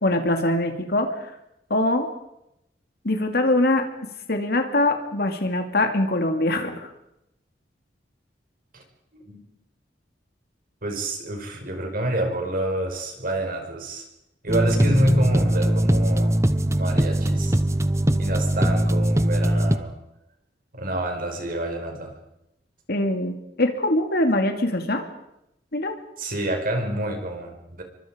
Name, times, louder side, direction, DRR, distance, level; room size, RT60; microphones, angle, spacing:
voice 1, 0.0-1.3 1.7-2.1 3.0-3.8 4.3-6.9 22.9-25.0 25.7-25.9, left 1 dB, 60° left, 5 dB, 2.6 m, -23 dB
voice 2, 10.8-14.0 14.4-16.3 16.7-17.6 18.2-19.9 20.7-22.1 26.2-27.8, right 1 dB, 55° right, 3 dB, 5.6 m, -27 dB
sound 1, 14.5-19.8, right 1 dB, 15° right, 1.0 m, -21 dB
28.5 x 24.0 x 5.2 m, 0.84 s
head